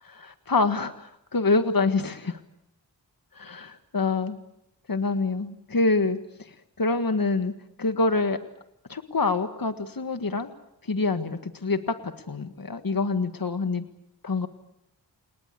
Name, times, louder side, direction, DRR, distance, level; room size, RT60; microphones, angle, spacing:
voice 1, 0.2-2.4 3.3-4.4 4.9-7.5 7.8-8.4 8.9-10.5 10.8-13.8 14.2-14.5, left 3 dB, 50° left, 8 dB, 1.7 m, -26 dB
30.0 x 19.0 x 8.4 m, 0.82 s
cardioid pair, 40°, 44 cm